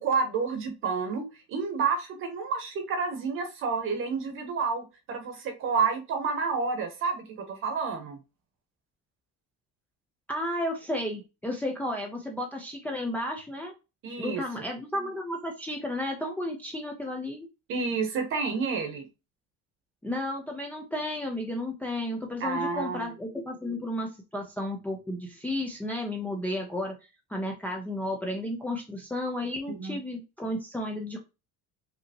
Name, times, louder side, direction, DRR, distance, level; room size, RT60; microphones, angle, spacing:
voice 1, 0.0-8.2 14.0-14.4 17.7-19.1 22.4-23.1 29.8-30.0, right 5 dB, 45° right, 6 dB, 1.1 m, -29 dB
voice 2, 10.3-13.7 14.2-17.5 20.0-26.9 27.3-31.2, left 1 dB, 5° left, 0 dB, 0.5 m, -33 dB
5.1 x 2.8 x 2.8 m, 0.28 s
cardioid pair, 170°, 30 cm